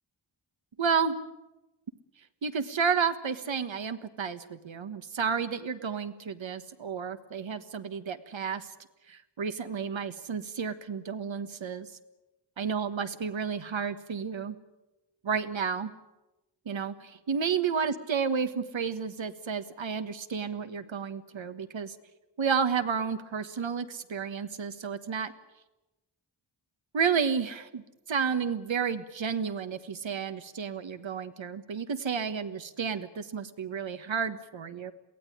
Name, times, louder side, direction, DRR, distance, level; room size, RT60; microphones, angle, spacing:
voice 1, 0.8-1.2 2.4-8.7 9.1-11.9 12.6-14.6 15.2-15.9 16.6-21.9 22.4-25.3 26.9-27.8 28.1-34.9, right 6 dB, 75° right, 10 dB, 1.5 m, -31 dB
23.0 x 16.5 x 10.0 m, 1.0 s
wide cardioid pair, 65°, 46 cm